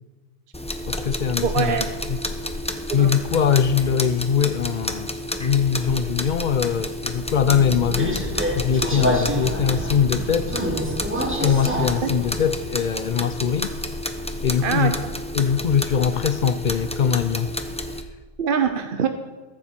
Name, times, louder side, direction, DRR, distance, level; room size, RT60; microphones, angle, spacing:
sound 1, 0.5-18.0, left 1 dB, 5° left, 0.6 m, -30 dB
voice 1, 0.9-1.8 2.1-2.2 2.9-5.1 5.4-8.2 8.5-10.5 11.4-13.7 14.4-15.0 15.3-17.5, left 7 dB, 65° left, 0.5 m, -22 dB
voice 2, 1.4-1.9 2.9-3.1 14.6-14.9 18.4-19.1, right 7 dB, 55° right, 0.8 m, -23 dB
Subway metro underground, 7.4-12.6, equal, 10° right, 1.4 m, -27 dB
21.5 x 7.5 x 4.4 m
omnidirectional pair, 1.3 m